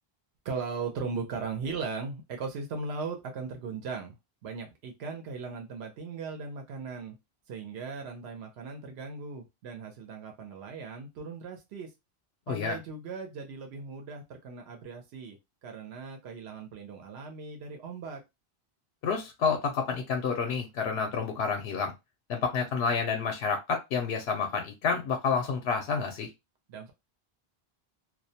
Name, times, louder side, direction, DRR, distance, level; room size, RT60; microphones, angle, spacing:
voice 1, 0.4-4.1 4.4-7.2 7.5-11.9 12.5-18.2 26.7-26.9, right 4 dB, 90° right, 4 dB, 0.8 m, -38 dB
voice 2, 12.5-12.8 19.0-21.9 22.3-26.3, left 5 dB, 90° left, 4 dB, 0.8 m, -29 dB
2.3 x 2.1 x 2.6 m, 0.22 s
omnidirectional pair, 1.0 m